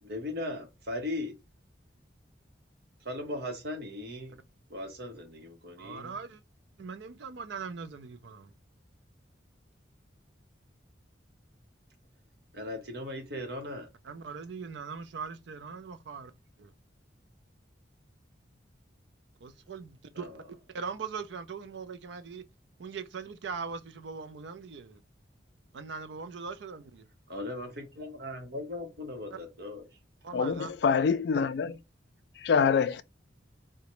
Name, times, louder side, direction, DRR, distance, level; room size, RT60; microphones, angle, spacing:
voice 1, 0.0-1.3 3.0-4.4 4.7-6.1 12.5-13.9 20.1-20.4 27.3-29.8, left 1 dB, 55° right, 0.9 m, -38 dB
voice 2, 5.8-6.4 6.8-8.5 14.0-16.3 16.6-16.7 19.4-20.4 20.7-22.4 22.8-25.0 25.7-27.1 29.3-29.4 30.2-30.7 31.0-31.1, right 5 dB, 70° right, 0.4 m, -40 dB
voice 3, 30.3-31.8 32.4-33.0, left 6 dB, 60° left, 0.3 m, -25 dB
3.8 x 2.2 x 3.0 m
head